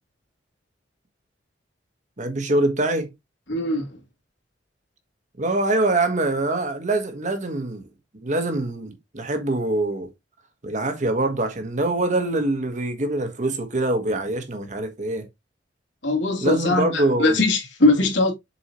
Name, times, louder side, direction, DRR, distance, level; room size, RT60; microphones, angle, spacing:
voice 1, 2.2-3.1 5.4-7.9 8.2-10.1 10.6-15.3 16.4-17.4, right 2 dB, 45° right, 1.6 m, -24 dB
voice 2, 3.5-4.0 16.0-18.3, left 2 dB, 80° left, 3.0 m, -21 dB
7.2 x 4.7 x 3.1 m
head